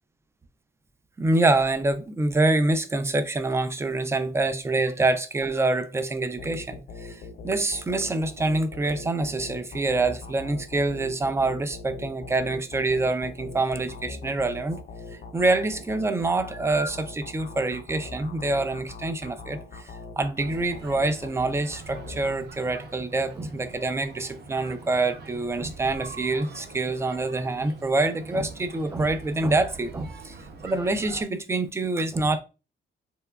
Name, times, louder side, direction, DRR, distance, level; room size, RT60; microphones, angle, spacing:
voice 1, 1.2-14.8 15.1-30.4 30.6-32.4, right 2 dB, 15° right, 0.3 m, -26 dB
sound 1, 6.4-23.0, left 4 dB, 50° left, 0.4 m, -42 dB
sound 2, 20.4-31.2, right 3 dB, 55° right, 0.6 m, -44 dB
2.8 x 2.2 x 2.2 m
cardioid pair, 90°, 20 cm